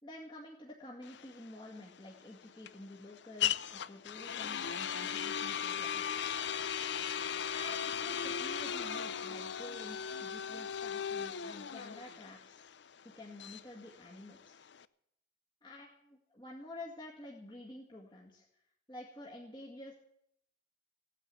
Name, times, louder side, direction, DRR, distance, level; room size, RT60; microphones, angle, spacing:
voice 1, 0.0-6.2 7.5-12.6 13.2-14.6 15.6-18.5 18.9-19.9, left 1 dB, 25° left, -3 dB, 2.0 m, -50 dB
sound 1, 1.0-14.8, left 8 dB, 65° left, 0.5 m, -37 dB
16.5 x 9.9 x 8.5 m, 0.75 s
head